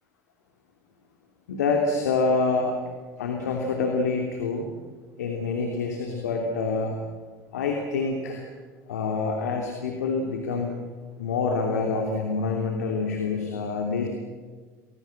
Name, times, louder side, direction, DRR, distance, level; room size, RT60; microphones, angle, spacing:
voice 1, 1.5-2.7 3.2-4.7 5.2-7.0 7.5-8.4 8.9-10.8 11.2-14.1, left 4 dB, 80° left, 2 dB, 2.9 m, -26 dB
30.0 x 21.5 x 7.8 m, 1.5 s
hypercardioid pair, 70°, 9 cm